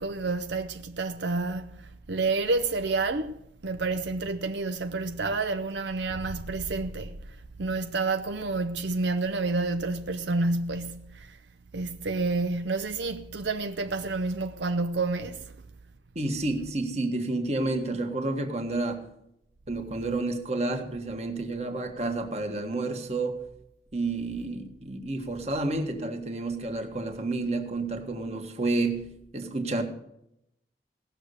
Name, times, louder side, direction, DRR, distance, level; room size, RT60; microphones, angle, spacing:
voice 1, 0.0-3.4 3.6-11.4 11.7-15.5, right 3 dB, 80° right, 0.7 m, -29 dB
voice 2, 16.1-19.1 19.7-23.4 23.9-29.8, right 2 dB, 35° right, 1.6 m, -30 dB
17.5 x 6.6 x 8.4 m
head